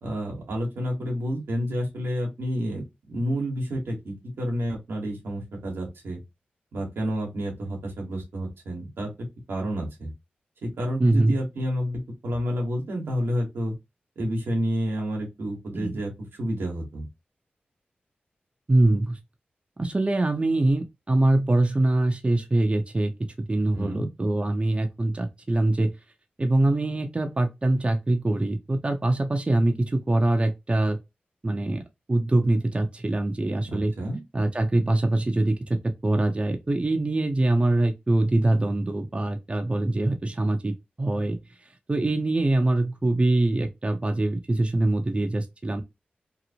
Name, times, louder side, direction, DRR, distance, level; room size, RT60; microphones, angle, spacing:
voice 1, 0.0-2.8 3.1-6.2 6.7-9.1 9.5-10.1 10.6-13.7 14.2-16.1 16.4-17.0 23.7-24.1 33.6-34.2, equal, 90° right, 1.1 m, -29 dB
voice 2, 11.0-11.4 15.7-16.0 18.7-19.2 19.8-23.1 23.5-25.9 26.4-31.0 31.4-33.9 34.3-41.4 41.9-45.8, right 2 dB, 30° right, 0.6 m, -23 dB
2.9 x 2.0 x 2.6 m
cardioid pair, 40°, 4 cm